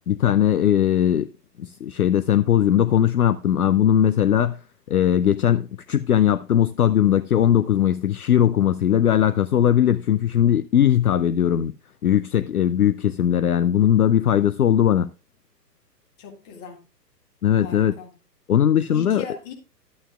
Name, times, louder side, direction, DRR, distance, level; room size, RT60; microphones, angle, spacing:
voice 1, 0.1-1.3 1.6-4.6 4.9-11.7 12.0-15.1 17.4-17.9 18.5-19.2, left 10 dB, 60° left, 0.5 m, -19 dB
voice 2, 16.2-16.8 17.6-18.1 18.9-19.5, left 7 dB, 25° left, 1.9 m, -38 dB
11.5 x 8.8 x 2.3 m
figure-of-eight pair, 125°, 50 cm